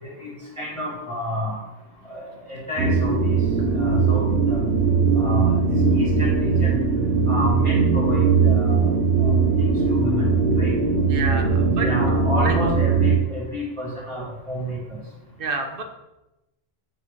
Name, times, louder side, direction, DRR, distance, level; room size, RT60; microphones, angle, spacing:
voice 1, 0.0-1.6 2.1-3.4 3.7-4.6 5.2-6.8 7.3-8.9 9.2-10.3 10.6-10.7 11.8-15.0, equal, 25° right, -6 dB, 2.0 m, -30 dB
sound 1, 2.8-13.2, right 4 dB, 75° right, 1.2 m, -20 dB
voice 2, 11.1-11.9 12.4-12.5 15.4-15.8, right 4 dB, 60° right, 5 dB, 0.9 m, -28 dB
6.0 x 3.3 x 4.8 m, 0.97 s
omnidirectional pair, 1.1 m